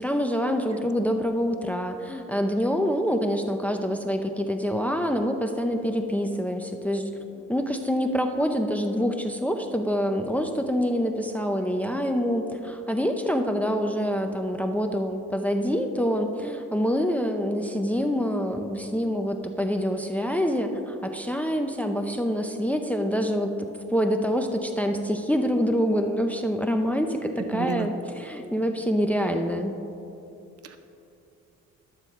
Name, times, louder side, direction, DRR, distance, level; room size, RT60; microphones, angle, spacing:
voice 1, 0.0-7.2 7.5-23.5 23.9-29.8, equal, 5° left, 5 dB, 0.6 m, -26 dB
voice 2, 27.5-27.9 30.6-30.8, right 8 dB, 50° right, 9 dB, 0.7 m, -31 dB
12.0 x 6.8 x 4.5 m, 2.8 s
cardioid pair, 90°, 30 cm